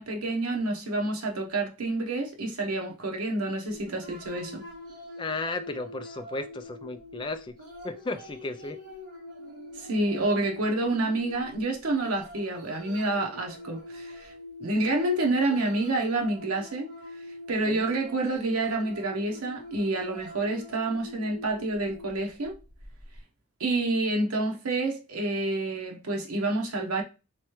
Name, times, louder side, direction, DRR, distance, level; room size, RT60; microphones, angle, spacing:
voice 1, 0.0-4.7 9.8-14.3 14.6-16.9 17.5-22.5 23.6-27.0, right 2 dB, 85° right, 0.9 m, -28 dB
sound 1, 3.7-23.2, left 1 dB, 40° right, 1.5 m, -44 dB
voice 2, 5.2-7.5 7.8-8.8 17.7-17.9, left 3 dB, 20° left, 0.3 m, -34 dB
3.3 x 3.1 x 3.1 m
head